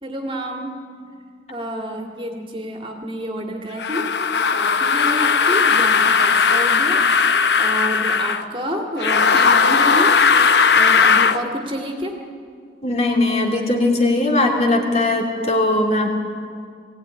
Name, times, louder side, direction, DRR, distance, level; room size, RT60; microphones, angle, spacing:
voice 1, 0.0-0.7 1.5-10.2 10.8-12.2, equal, 30° right, 2 dB, 2.2 m, -29 dB
sound 1, 3.8-8.4 9.0-11.4, left 5 dB, 75° left, 0.8 m, -17 dB
voice 2, 12.8-16.1, left 2 dB, 35° left, 1 dB, 2.7 m, -19 dB
21.5 x 16.5 x 9.9 m, 2.2 s
head